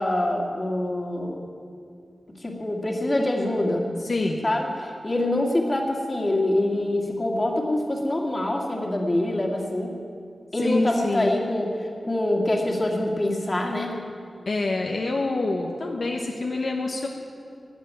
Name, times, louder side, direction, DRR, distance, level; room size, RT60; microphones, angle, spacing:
voice 1, 0.0-1.4 2.4-3.9 4.4-9.9 10.5-11.7 12.0-14.0, left 1 dB, 25° left, 0 dB, 2.2 m, -25 dB
voice 2, 4.0-4.4 10.6-11.4 14.5-17.1, left 2 dB, 60° left, 0 dB, 1.2 m, -26 dB
13.0 x 10.0 x 9.5 m, 2.4 s
wide cardioid pair, 110°, 0 cm